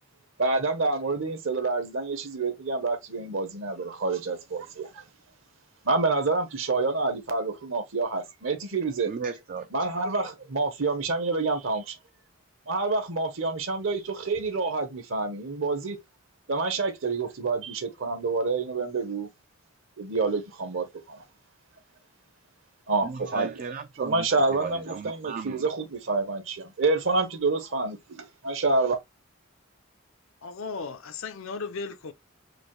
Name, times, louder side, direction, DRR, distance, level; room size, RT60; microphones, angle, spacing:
voice 1, 0.4-5.0 5.8-9.1 9.7-12.0 12.7-16.0 16.5-19.3 20.0-21.2 22.9-23.5 24.0-29.0, right 3 dB, 65° right, 1.0 m, -28 dB
voice 2, 9.1-9.7 23.0-25.7, right 5 dB, 40° right, 0.3 m, -36 dB
voice 3, 30.4-32.1, left 4 dB, 70° left, 0.6 m, -36 dB
5.0 x 2.2 x 3.0 m
head